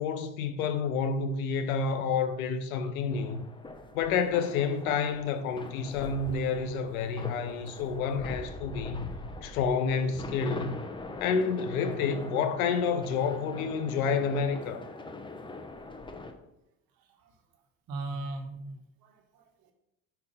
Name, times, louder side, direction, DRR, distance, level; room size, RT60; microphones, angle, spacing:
voice 1, 0.0-3.4 3.9-9.1 9.4-10.8 11.2-14.8, left 5 dB, 90° left, 0.8 m, -29 dB
sound 1, 3.1-16.3, left 2 dB, 10° left, 0.7 m, -42 dB
voice 2, 17.0-17.3 17.9-19.7, right 2 dB, 55° right, 1.4 m, -40 dB
5.3 x 4.5 x 5.5 m
supercardioid pair, 100°, 41 cm